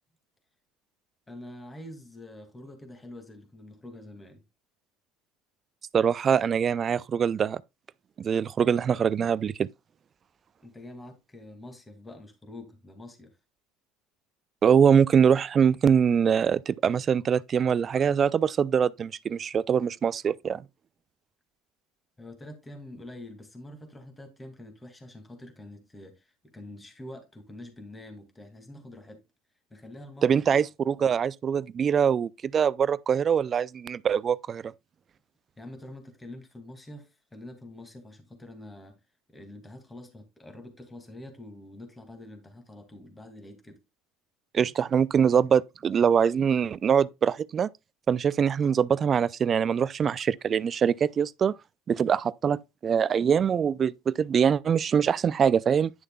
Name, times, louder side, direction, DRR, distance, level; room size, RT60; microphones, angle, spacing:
voice 1, 1.3-4.4 10.6-13.3 22.2-29.2 29.7-30.4 31.0-31.1 35.6-39.0 39.3-43.8, left 1 dB, 15° left, 2.3 m, -45 dB
voice 2, 5.9-7.6 8.2-9.7 14.6-20.6 30.2-34.7 44.5-47.7 48.1-51.5 51.9-55.9, right 7 dB, 40° right, 0.4 m, -23 dB
10.5 x 6.5 x 2.3 m
hypercardioid pair, 75°, 0 cm